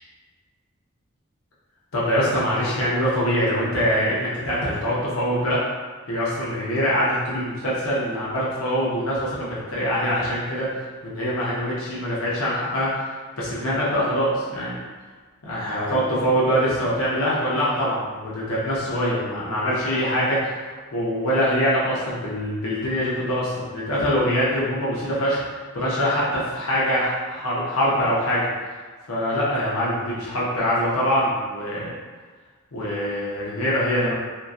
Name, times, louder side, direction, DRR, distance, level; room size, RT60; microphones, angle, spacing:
voice 1, 1.9-5.6 6.1-10.7 11.0-13.1 13.4-14.8 15.4-20.5 20.9-25.4 25.7-28.4 29.1-31.9 32.7-34.1, equal, 90° left, -7 dB, 0.8 m, -23 dB
2.8 x 2.6 x 2.4 m, 1.4 s
head